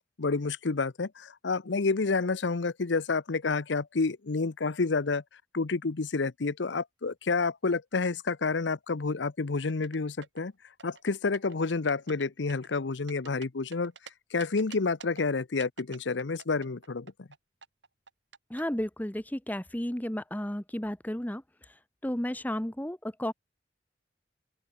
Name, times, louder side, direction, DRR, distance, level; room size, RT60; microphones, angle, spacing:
voice 1, 0.2-5.2 5.5-10.5 10.8-13.9 14.3-17.3, left 4 dB, 90° left, 0.8 m, -29 dB
sound 1, 9.7-10.4 10.8-11.6 11.9-12.2 12.5-14.1 14.4-15.2 15.6-17.4 17.6-18.6, right 6 dB, 90° right, 6.6 m, -48 dB
voice 2, 18.5-21.4 22.0-23.3, equal, 10° left, 0.9 m, -33 dB
open air
head